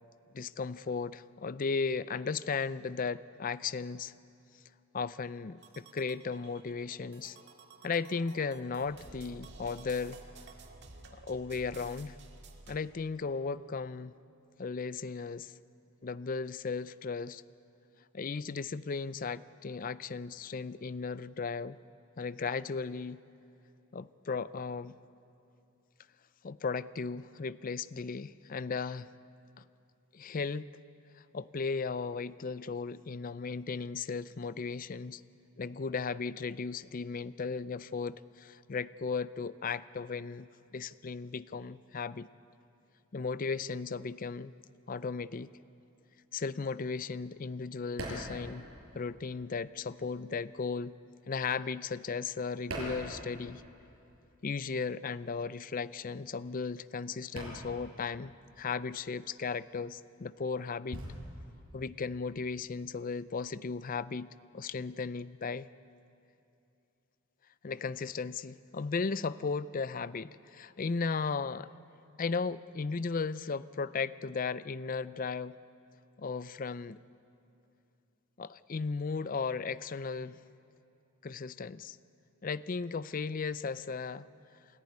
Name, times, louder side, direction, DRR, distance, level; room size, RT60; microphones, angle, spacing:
voice 1, 0.3-4.1 4.9-7.4 7.8-10.2 11.2-12.2 12.7-14.1 14.6-15.5 16.0-17.4 18.1-21.8 22.2-23.2 23.9-25.0 26.4-29.1 30.1-30.7 31.3-35.2 35.6-42.3 43.1-44.5 44.9-45.5 46.3-48.7 48.9-51.0 51.3-53.6 54.4-58.3 58.6-61.0 61.7-64.3 64.5-65.7 67.6-71.7 72.2-75.6 76.2-77.0 78.4-80.4 81.2-82.0 82.4-84.3, left 5 dB, 40° left, 16 dB, 0.5 m, -36 dB
sound 1, 5.6-12.8, right 3 dB, 55° right, 2.0 m, -52 dB
sound 2, 46.2-49.5 49.8-53.9 54.2-62.9, right 1 dB, 75° right, 7.1 m, -45 dB
27.5 x 14.5 x 9.6 m, 2.7 s
head